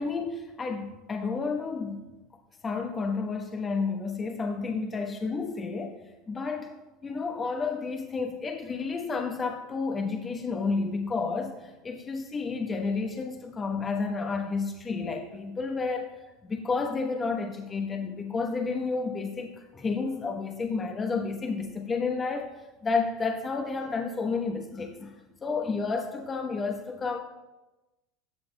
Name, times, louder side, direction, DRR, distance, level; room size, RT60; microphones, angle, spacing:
voice 1, 0.0-2.0 2.6-5.9 6.3-6.7 7.0-16.1 16.4-22.5 22.8-25.1 25.4-27.2, left 4 dB, 25° left, 3 dB, 1.1 m, -31 dB
14.0 x 7.7 x 2.3 m, 1.1 s
supercardioid pair, 95°, 0 cm